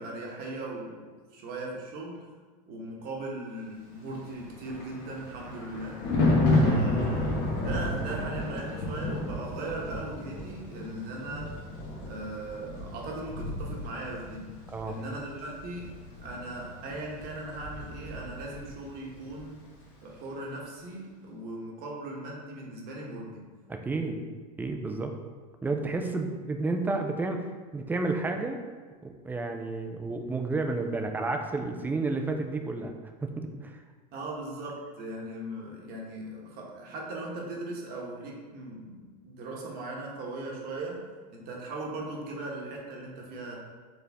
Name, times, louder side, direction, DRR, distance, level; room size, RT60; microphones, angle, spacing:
voice 1, 0.0-2.3 2.7-6.0 6.6-11.6 12.1-14.5 14.9-19.6 20.0-23.5 34.1-41.0 41.3-43.6, right 2 dB, 50° right, -2 dB, 1.2 m, -38 dB
Thunder, 4.3-18.8 19.1-19.4, left 2 dB, 55° left, 1.2 m, -31 dB
voice 2, 23.7-24.2 24.6-25.1 25.6-27.5 27.7-28.6 29.0-32.9 33.2-33.8, right 3 dB, 10° right, 4 dB, 0.4 m, -31 dB
4.5 x 3.2 x 3.5 m, 1.5 s
supercardioid pair, 115°, 20 cm